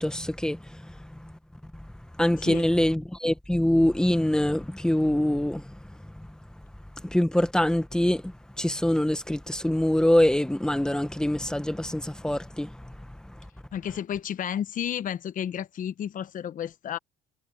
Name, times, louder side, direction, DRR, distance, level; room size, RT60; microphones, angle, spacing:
voice 1, 0.0-1.3 1.7-1.9 2.2-6.4 7.0-13.4, left 1 dB, 5° left, 1.4 m, -25 dB
voice 2, 13.7-17.0, left 9 dB, 50° left, 1.1 m, -32 dB
cardioid pair, 110°, 17 cm